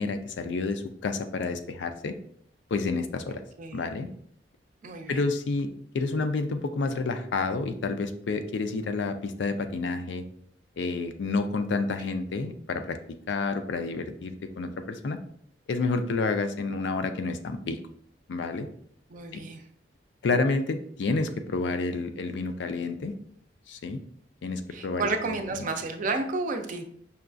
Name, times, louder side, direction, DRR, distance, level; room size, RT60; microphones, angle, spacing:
voice 1, 0.0-2.1 2.7-3.4 3.7-4.1 5.1-10.2 10.8-13.0 13.3-15.2 15.7-17.8 18.3-18.7 19.3-19.4 20.2-23.2 23.7-24.0 24.4-25.4 25.6-25.7, left 3 dB, 80° left, 8 dB, 0.4 m, -29 dB
voice 2, 3.6-3.9 4.8-5.2 19.1-19.6 24.7-26.8, right 3 dB, 45° right, 6 dB, 0.4 m, -31 dB
5.6 x 2.3 x 2.5 m, 0.64 s
head